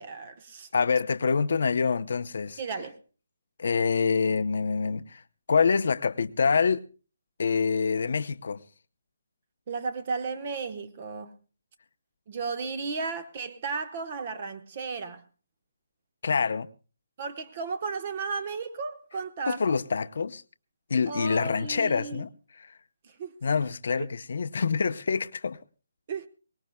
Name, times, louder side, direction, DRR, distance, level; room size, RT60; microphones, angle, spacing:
voice 1, 0.0-0.7 2.6-3.0 9.7-11.3 12.3-15.2 17.2-19.8 21.1-22.2 23.0-23.7 24.0-24.1 26.1-26.3, right 4 dB, 35° right, 1.2 m, -34 dB
voice 2, 0.7-2.6 3.6-5.2 5.5-6.8 7.4-8.6 16.2-16.7 19.5-20.4 20.9-22.3 22.6-22.8 23.4-25.6, left 5 dB, 60° left, 0.7 m, -26 dB
23.5 x 19.0 x 2.2 m
hypercardioid pair, 165°, 0 cm